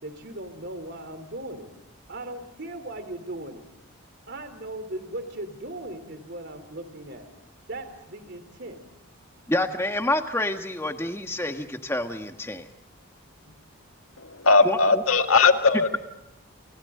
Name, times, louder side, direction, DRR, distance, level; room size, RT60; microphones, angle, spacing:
voice 1, 0.0-1.7 2.1-3.6 4.3-7.3 7.7-8.8 13.4-13.6, right 1 dB, 50° right, 9 dB, 3.5 m, -38 dB
voice 2, 9.5-12.7 14.6-15.0 15.7-16.0, left 1 dB, 10° left, 5 dB, 1.5 m, -28 dB
voice 3, 14.2-15.9, left 4 dB, 75° left, 6 dB, 2.0 m, -19 dB
29.5 x 29.0 x 3.9 m, 0.88 s
head